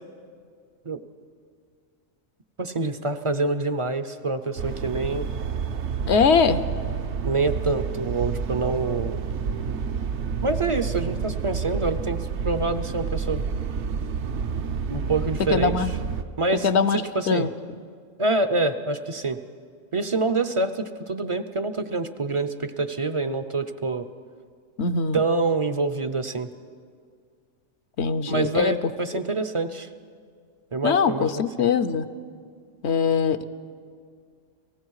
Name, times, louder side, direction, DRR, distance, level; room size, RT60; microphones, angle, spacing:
voice 1, 2.6-5.3 7.2-9.2 10.4-13.4 14.9-15.8 16.4-16.7 17.1-17.5 18.2-19.4 19.9-24.1 25.1-26.5 28.3-29.9 30.7-31.7, right 3 dB, 35° right, 10 dB, 0.5 m, -26 dB
sound 1, 4.6-16.2, right 6 dB, 65° right, 1.0 m, -29 dB
voice 2, 6.1-6.6 15.5-15.9 16.6-17.0 17.3-17.5 24.8-25.2 28.0-28.8 29.1-29.2 30.8-32.1 32.8-33.4, left 5 dB, 65° left, 13 dB, 0.9 m, -22 dB
30.0 x 18.5 x 4.8 m, 2.1 s
omnidirectional pair, 1.3 m